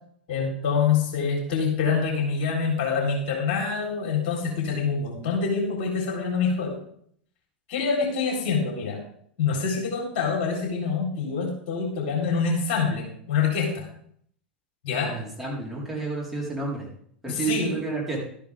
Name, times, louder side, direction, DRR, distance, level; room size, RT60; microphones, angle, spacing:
voice 1, 0.3-6.8 7.7-9.0 9.4-13.9 14.8-15.1 17.3-17.8, left 5 dB, 55° left, 0 dB, 4.1 m, -26 dB
voice 2, 15.1-16.9 17.2-18.2, right 4 dB, 5° right, -5 dB, 4.6 m, -30 dB
13.0 x 10.0 x 3.7 m, 0.63 s
figure-of-eight pair, 90°, 6 cm